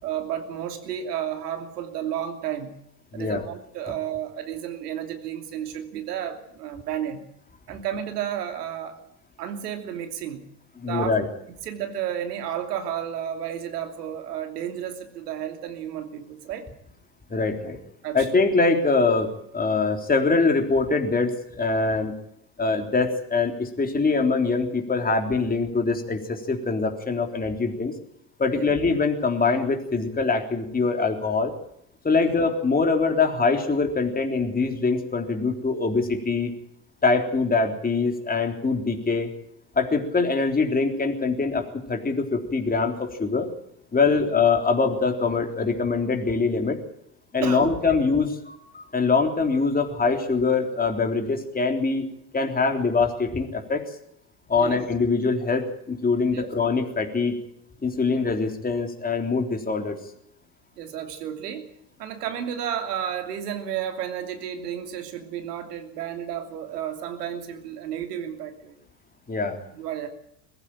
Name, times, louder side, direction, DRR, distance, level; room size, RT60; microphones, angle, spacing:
voice 1, 0.0-2.7 3.1-7.2 7.7-9.0 9.4-10.5 10.9-11.2 11.5-16.7 18.0-18.3 28.5-28.7 32.1-32.3 44.0-44.3 47.4-48.0 54.6-54.8 56.3-56.5 60.8-61.7 62.0-68.8 69.7-70.1, right 9 dB, 75° right, 6 dB, 3.0 m, -32 dB
voice 2, 3.1-3.4 10.8-11.3 17.3-17.8 18.1-22.1 22.6-27.9 28.4-31.5 32.0-36.5 37.0-39.3 39.8-43.5 43.9-46.8 47.3-52.1 52.3-53.8 54.5-57.3 57.8-60.0 69.3-69.6, left 4 dB, 20° left, 4 dB, 3.6 m, -23 dB
21.5 x 15.0 x 9.0 m, 0.75 s
hypercardioid pair, 75°, 48 cm